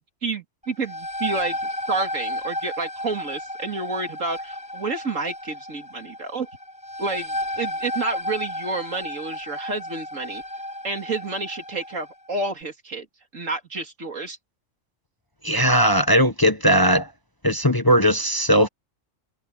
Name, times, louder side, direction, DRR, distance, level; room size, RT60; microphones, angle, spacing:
voice 1, 0.2-1.6 1.9-6.5 7.0-10.4 10.8-13.1 13.3-14.4, right 3 dB, 80° right, 2.9 m, -29 dB
sound 1, 0.6-12.1, left 1 dB, 5° right, 4.3 m, -33 dB
voice 2, 15.4-17.1 17.4-18.7, equal, 20° left, 1.0 m, -18 dB
omnidirectional pair, 1.3 m